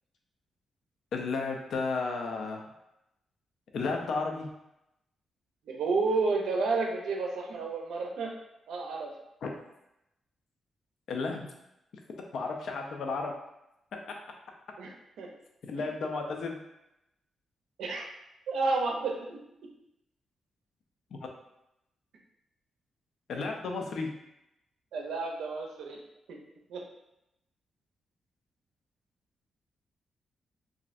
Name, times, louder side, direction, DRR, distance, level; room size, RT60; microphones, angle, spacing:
voice 1, 1.1-2.6 3.7-4.5 9.4-9.5 11.1-11.5 12.3-13.3 15.7-16.6 23.3-24.1, left 4 dB, 70° left, 2 dB, 0.5 m, -32 dB
voice 2, 5.7-8.3 8.7-9.1 14.8-15.3 17.8-18.1 18.5-19.4 24.9-26.0 26.3-26.4 26.7-26.9, right 3 dB, 90° right, 1 dB, 0.5 m, -31 dB
3.0 x 2.5 x 2.5 m, 0.86 s
cardioid pair, 100°, 0 cm